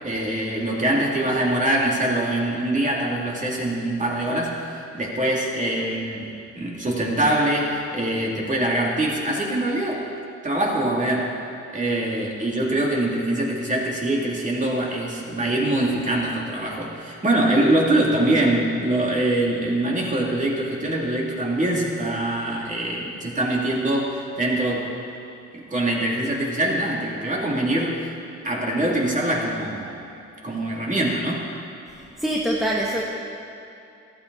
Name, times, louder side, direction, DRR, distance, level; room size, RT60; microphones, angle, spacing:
voice 1, 0.0-10.0 10.4-11.3 11.7-24.9 25.5-28.1 28.4-30.0 30.4-31.4, right 1 dB, 25° right, -3 dB, 2.9 m, -23 dB
voice 2, 31.9-33.1, right 1 dB, ahead, -4 dB, 1.3 m, -25 dB
14.5 x 13.0 x 4.1 m, 2.7 s
cardioid pair, 90°, 30 cm